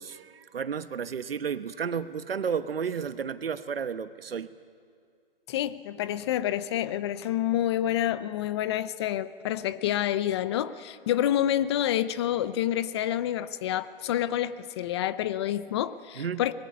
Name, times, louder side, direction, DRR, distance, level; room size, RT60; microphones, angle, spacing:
voice 1, 0.0-4.5 16.2-16.4, right 7 dB, 80° right, 13 dB, 1.1 m, -32 dB
voice 2, 5.5-16.5, left 12 dB, 30° left, 16 dB, 0.5 m, -28 dB
23.5 x 20.5 x 9.4 m, 2.3 s
hypercardioid pair, 140°, 29 cm